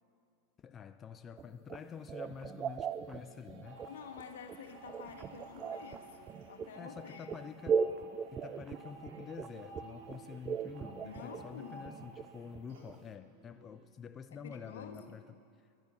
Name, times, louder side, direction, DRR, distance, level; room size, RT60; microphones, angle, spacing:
voice 1, 0.6-3.9 6.8-7.9 8.3-15.3 15.6-15.7, left 7 dB, 30° left, 10 dB, 0.4 m, -48 dB
sound 1, 1.4-13.1, right 6 dB, 30° right, 0.5 m, -38 dB
sound 2, 2.0-13.9, right 6 dB, 55° right, 2.2 m, -61 dB
sound 3, 3.6-12.3 12.7-12.8, right 2 dB, 70° right, 3.7 m, -53 dB
voice 2, 3.9-7.5 11.0-11.9 14.3-15.2, left 7 dB, 80° left, 5 dB, 1.4 m, -49 dB
11.0 x 10.5 x 7.9 m, 2.4 s
hypercardioid pair, 105°, 0 cm